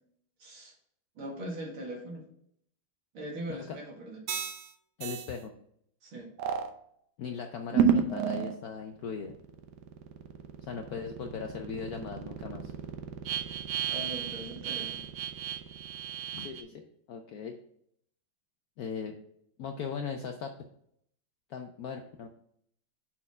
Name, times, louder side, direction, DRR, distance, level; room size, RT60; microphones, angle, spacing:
voice 1, 0.4-0.7 1.2-2.2 3.1-4.2 6.0-6.3 13.9-15.0, right 1 dB, 80° right, -2 dB, 2.6 m, -40 dB
sound 1, 4.3-4.7 5.0-5.3 6.4-6.7 7.7-8.6 9.1-16.6, right 7 dB, 65° right, 1.1 m, -32 dB
voice 2, 5.0-5.5 7.2-9.3 10.6-12.7 16.3-17.6 18.8-19.1 19.6-20.5 21.5-22.3, left 6 dB, 75° left, 4 dB, 0.8 m, -39 dB
5.8 x 4.3 x 5.4 m, 0.69 s
omnidirectional pair, 2.2 m